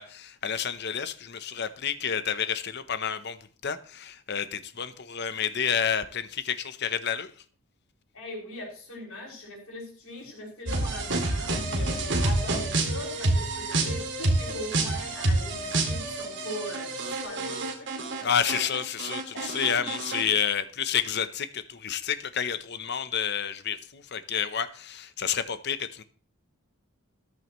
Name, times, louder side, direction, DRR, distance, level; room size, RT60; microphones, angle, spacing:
voice 1, 0.0-3.4 3.6-7.3 18.2-26.0, left 8 dB, 50° left, 0.8 m, -29 dB
voice 2, 8.1-18.7 19.3-19.5, left 1 dB, 80° left, 6.0 m, -41 dB
sound 1, 10.7-18.2 18.5-20.2, right 2 dB, 55° right, 2.2 m, -28 dB
14.0 x 11.5 x 3.1 m
head